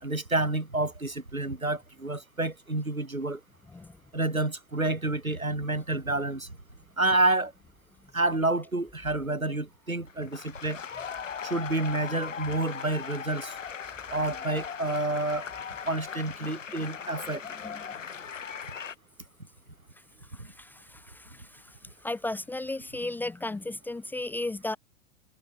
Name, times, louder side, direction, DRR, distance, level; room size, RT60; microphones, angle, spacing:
voice 1, 0.0-3.4 4.1-6.5 7.0-7.5 8.1-10.8 11.5-13.5 14.1-15.5 15.9-17.4, right 2 dB, 85° right, 3.5 m, -29 dB
sound 1, 10.1-18.9, left 7 dB, 65° left, 5.7 m, -38 dB
voice 2, 20.3-21.7 22.0-24.8, left 2 dB, 5° left, 1.0 m, -35 dB
figure-of-eight pair, 105°, 41 cm